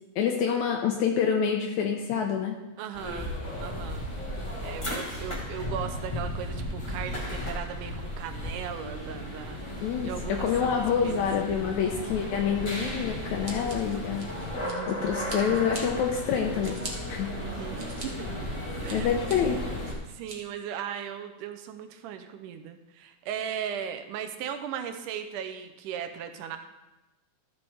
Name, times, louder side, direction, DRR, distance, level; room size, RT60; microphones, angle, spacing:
voice 1, 0.2-2.6 9.8-14.3 14.9-16.8 17.1-17.3 18.9-19.7, left 7 dB, 75° left, 2 dB, 2.0 m, -27 dB
voice 2, 2.8-3.3 3.6-4.1 4.6-9.6 10.0-11.2 14.6-15.1 17.4-18.3 18.8-19.2 20.1-26.6, right 8 dB, 85° right, 7 dB, 2.3 m, -37 dB
sound 1, 2.9-19.9, left 1 dB, 30° left, 0.5 m, -35 dB
Scissors, 13.4-14.9 15.3-15.8 16.3-16.9 17.5-18.1 18.5-19.3 19.8-20.4, right 3 dB, 50° right, 0.9 m, -41 dB
13.0 x 6.9 x 3.5 m, 1.0 s
omnidirectional pair, 3.5 m